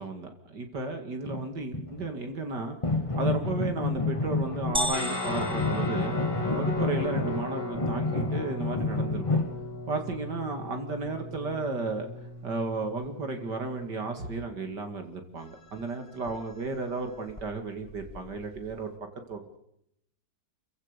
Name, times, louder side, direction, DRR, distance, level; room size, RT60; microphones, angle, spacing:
voice 1, 0.0-2.8 3.1-6.2 6.5-9.4 9.9-12.1 12.4-18.9 19.3-19.6, right 3 dB, 60° right, 5 dB, 2.8 m, -34 dB
sound 1, 1.2-2.1 2.8-5.0 5.3-9.6 15.8-15.9 16.2-16.4 16.7-16.8 17.3-17.5 17.9-18.8, left 2 dB, 15° left, 1.6 m, -30 dB
sound 2, 4.7-6.7, equal, 5° right, 1.2 m, -34 dB
Guitar, 4.9-14.3, left 3 dB, 85° left, 6.9 m, -37 dB
29.5 x 15.5 x 6.8 m, 0.76 s
omnidirectional pair, 2.1 m